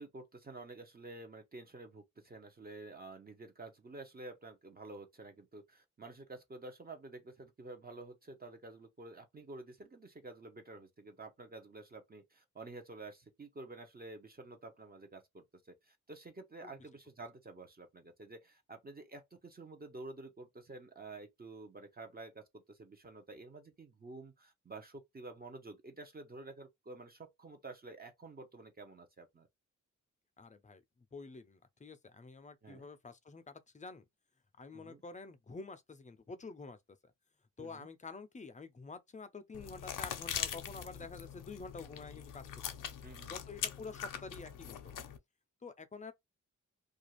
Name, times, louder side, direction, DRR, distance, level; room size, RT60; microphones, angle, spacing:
voice 1, 0.0-29.5 32.6-32.9 34.7-35.0 37.6-37.9 43.0-43.4, right 2 dB, 30° right, 0.7 m, -50 dB
voice 2, 30.4-30.8 31.1-34.0 34.6-36.8 37.0-37.1 37.6-42.4 42.9-43.0 43.3-45.0 45.6-46.1, left 4 dB, 25° left, 0.4 m, -48 dB
sound 1, 39.5-45.2, left 9 dB, 90° left, 0.5 m, -42 dB
2.5 x 2.3 x 3.0 m
wide cardioid pair, 100°, 31 cm